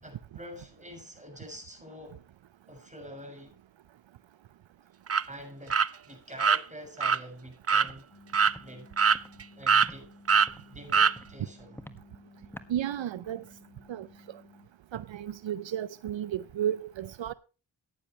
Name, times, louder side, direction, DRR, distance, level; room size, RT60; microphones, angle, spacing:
voice 1, 0.0-2.2 2.7-3.6 5.3-8.1 8.6-8.9 9.5-10.1 10.6-11.8, equal, 15° right, 6.5 m, -46 dB
sound 1, 5.1-5.2 5.7-5.9 6.4-6.6 7.0-7.2 7.7-7.9 8.3-8.5 9.0-9.4 9.7-9.9 10.3-10.5 10.9-11.1, right 6 dB, 35° right, 0.6 m, -22 dB
Walk footsteps, 7.8-8.0 8.5-8.7 9.1-9.3 9.8-10.0 10.4-10.7 11.1-11.3 11.7-12.0 12.5-12.7, left 1 dB, 5° left, 1.5 m, -46 dB
sound 2, 8.1-14.7, left 3 dB, 50° left, 3.7 m, -55 dB
voice 2, 12.7-13.4 13.9-14.1 14.9-17.3, right 10 dB, 75° right, 0.6 m, -33 dB
15.0 x 10.0 x 3.1 m
cardioid pair, 65°, 45 cm